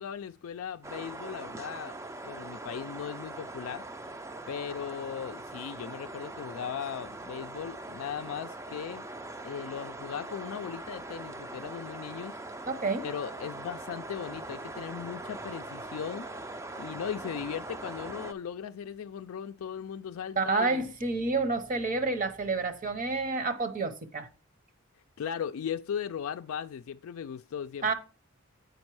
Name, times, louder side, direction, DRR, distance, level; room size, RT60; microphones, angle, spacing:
voice 1, 0.0-2.0 2.2-3.8 4.5-9.1 9.4-12.4 13.0-16.3 16.8-20.9 25.2-27.9, left 8 dB, 80° left, 0.3 m, -38 dB
sound 1, 0.8-18.3, right 2 dB, 15° right, 0.4 m, -42 dB
voice 2, 12.7-13.0 16.7-16.8 20.4-24.3 27.8-27.9, right 3 dB, 40° right, 0.9 m, -29 dB
8.0 x 5.3 x 4.6 m
head